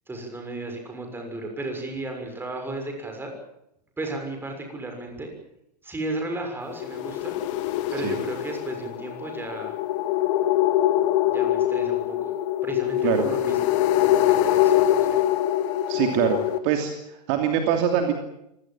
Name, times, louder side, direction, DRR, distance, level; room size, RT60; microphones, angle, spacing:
voice 1, 0.1-3.3 4.0-5.3 5.8-7.4 7.9-9.7 11.3-12.3 12.6-15.2, right 2 dB, 10° right, 4 dB, 6.6 m, -34 dB
sound 1, 6.7-16.6, left 13 dB, 45° left, 1.8 m, -23 dB
voice 2, 15.9-16.4 16.6-18.1, right 9 dB, 45° right, 4 dB, 3.0 m, -23 dB
25.5 x 18.0 x 7.5 m, 0.80 s
figure-of-eight pair, 105°, 21 cm